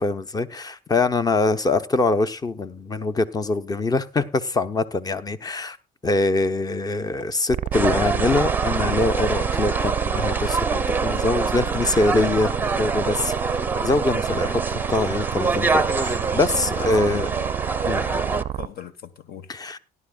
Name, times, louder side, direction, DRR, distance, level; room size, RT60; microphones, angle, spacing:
voice 1, 0.0-5.8 6.0-17.3 17.9-18.0 19.5-19.8, left 3 dB, 20° left, 0.9 m, -24 dB
sound 1, 7.1-7.3 7.7-7.8 8.3-8.5 9.0-9.2 9.6-9.8 10.3-10.5 10.9-11.1 11.5-11.7 12.1-12.2 12.6-12.8 13.2-13.4 13.8-14.0 14.3-14.5 14.8-15.0 15.4-15.6 15.9-16.1 16.5-16.6 17.0-17.7 18.1-18.4, left 4 dB, 45° left, 1.4 m, -43 dB
sound 2, 7.5-18.7, right 11 dB, 45° right, 0.5 m, -29 dB
sound 3, 7.7-18.4, right 3 dB, 10° right, 0.7 m, -26 dB
voice 2, 14.3-14.7 16.6-17.5 18.3-19.5, left 8 dB, 65° left, 1.3 m, -40 dB
17.0 x 11.0 x 2.4 m
cardioid pair, 110°, 17 cm